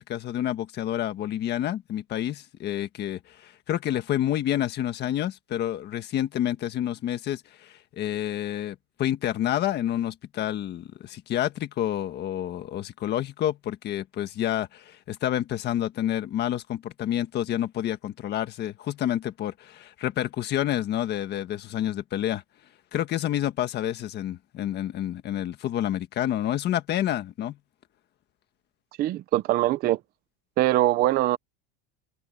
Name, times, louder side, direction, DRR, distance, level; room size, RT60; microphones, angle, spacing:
voice 1, 0.0-22.4 22.9-27.6, left 11 dB, 30° left, 1.6 m, -29 dB
voice 2, 29.0-30.0 30.6-31.4, right 15 dB, 25° right, 0.5 m, -22 dB
cardioid pair, 175°, 34 cm